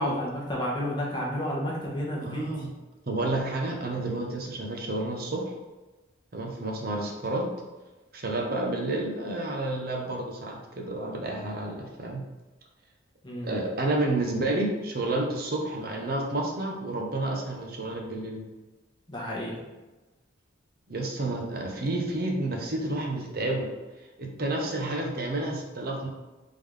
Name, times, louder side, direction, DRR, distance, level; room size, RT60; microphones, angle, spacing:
voice 1, 0.0-2.6 13.2-13.6 19.1-19.6, equal, 20° left, -4 dB, 0.9 m, -31 dB
voice 2, 2.2-2.7 3.1-5.6 6.3-7.5 8.1-12.3 13.4-18.4 20.9-23.7 24.2-26.1, right 2 dB, 45° right, 1 dB, 0.8 m, -30 dB
3.7 x 3.6 x 3.2 m, 1.1 s
head